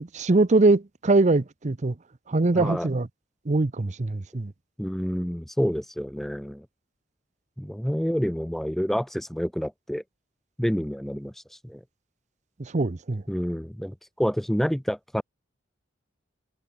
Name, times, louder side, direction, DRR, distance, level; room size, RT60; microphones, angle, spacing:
voice 1, 0.0-1.9 2.3-3.1 3.5-4.5 12.6-13.2, right 2 dB, 35° right, 0.7 m, -22 dB
voice 2, 2.5-2.9 4.8-6.7 7.6-10.0 10.6-11.3 11.6-11.8 13.3-15.2, equal, ahead, 0.4 m, -28 dB
head